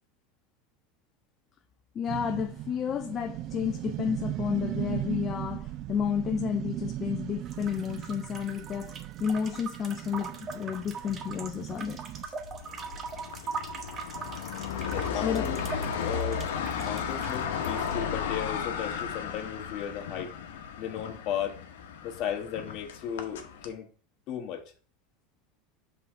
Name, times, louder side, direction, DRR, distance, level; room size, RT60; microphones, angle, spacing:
voice 1, 1.9-12.0 15.1-15.5, left 8 dB, 35° left, 0.4 m, -31 dB
sound 1, 2.1-12.2, right 14 dB, 50° right, 0.4 m, -37 dB
sound 2, 7.4-18.0, right 5 dB, 30° right, 0.9 m, -41 dB
sound 3, 12.2-23.7, left 7 dB, 90° left, 0.9 m, -35 dB
voice 2, 14.9-15.6 16.0-16.5 16.7-20.3 20.8-21.6 22.0-23.9 24.3-24.6, left 9 dB, 50° left, 1.3 m, -35 dB
5.5 x 3.8 x 5.4 m
supercardioid pair, 125°, 0 cm